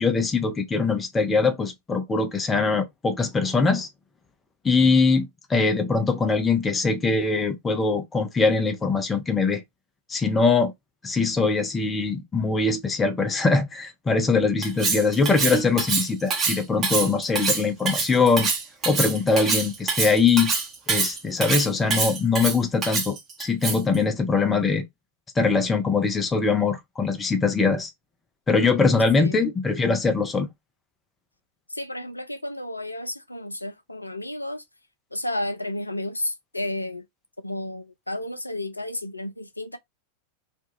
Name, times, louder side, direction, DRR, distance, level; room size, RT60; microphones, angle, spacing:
voice 1, 0.0-3.9 4.6-9.6 10.1-10.7 11.0-18.5 18.8-20.5 20.9-24.8 25.4-27.9 28.5-30.5, left 4 dB, 15° left, 0.6 m, -22 dB
Cutlery silverware, 14.6-24.0, right 4 dB, 25° right, 0.9 m, -25 dB
voice 2, 31.7-34.6 35.1-37.0 37.4-39.8, left 1 dB, 85° left, 0.3 m, -32 dB
2.5 x 2.3 x 2.9 m
figure-of-eight pair, 90°, 0 cm